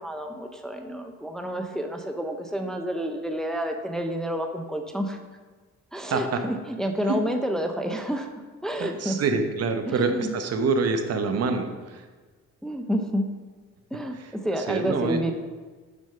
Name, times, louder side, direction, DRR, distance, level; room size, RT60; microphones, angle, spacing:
voice 1, 0.0-5.2 5.9-8.3 8.6-9.2 9.9-10.3 12.6-13.3 13.9-15.3, equal, ahead, 4 dB, 0.6 m, -29 dB
voice 2, 8.8-12.1 14.7-15.2, right 4 dB, 55° right, 6 dB, 1.0 m, -26 dB
6.3 x 5.2 x 5.6 m, 1.4 s
cardioid pair, 90°, 30 cm